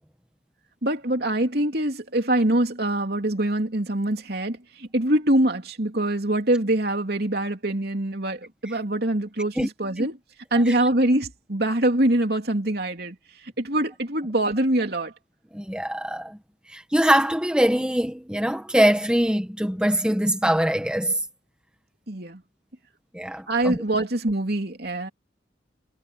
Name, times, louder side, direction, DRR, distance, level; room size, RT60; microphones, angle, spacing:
voice 1, 0.8-10.2 10.5-13.2 13.6-15.1 22.1-22.4 23.5-25.1, right 1 dB, 60° right, 3.2 m, -24 dB
voice 2, 15.5-16.4 16.7-21.2 23.1-23.8, equal, 5° right, 1.3 m, -23 dB
head